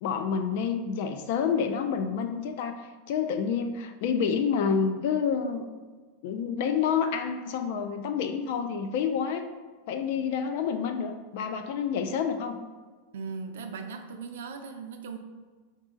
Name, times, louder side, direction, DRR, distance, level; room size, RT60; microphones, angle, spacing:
voice 1, 0.0-2.8 3.1-5.7 6.2-9.4 9.9-12.6, left 6 dB, 50° left, 7 dB, 0.4 m, -28 dB
voice 2, 13.1-15.2, right 5 dB, 85° right, 6 dB, 0.5 m, -38 dB
4.9 x 2.7 x 3.7 m, 1.4 s
supercardioid pair, 165°, 0 cm